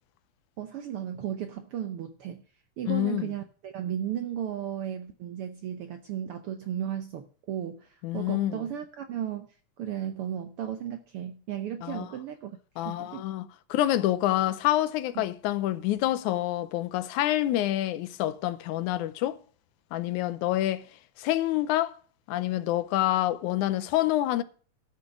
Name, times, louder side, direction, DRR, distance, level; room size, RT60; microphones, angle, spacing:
voice 1, 0.6-2.4 2.8-13.3 15.1-15.2, right 10 dB, 75° right, 1.3 m, -35 dB
voice 2, 2.9-3.2 8.0-8.6 11.8-12.1 12.8-19.4 19.9-20.8 21.2-22.0 22.3-24.4, left 14 dB, 85° left, 2.1 m, -27 dB
12.5 x 6.4 x 5.9 m
omnidirectional pair, 3.4 m